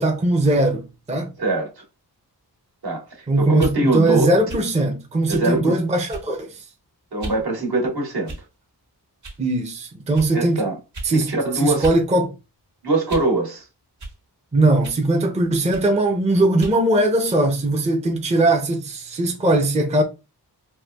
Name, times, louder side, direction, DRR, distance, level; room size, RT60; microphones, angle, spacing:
voice 1, 0.0-1.3 3.3-6.6 9.4-10.6 11.0-11.3 11.6-12.3 14.5-20.0, right 2 dB, 15° right, 0.5 m, -20 dB
voice 2, 1.4-1.8 2.8-4.3 5.3-5.7 7.1-8.3 10.3-10.8 11.1-11.9 12.8-13.6, right 2 dB, 65° right, 1.6 m, -23 dB
sound 1, 3.5-3.8 4.5-4.7 5.3-5.5 6.1-6.4 7.2-7.4 8.2-8.6 9.2-9.4 10.1-10.3 10.9-11.1 11.8-12.0 12.4-13.4 14.0-14.2 14.8-15.1 15.7-15.9 16.6-16.8, right 2 dB, 45° right, 1.3 m, -35 dB
4.4 x 2.4 x 2.2 m
wide cardioid pair, 80°, 40 cm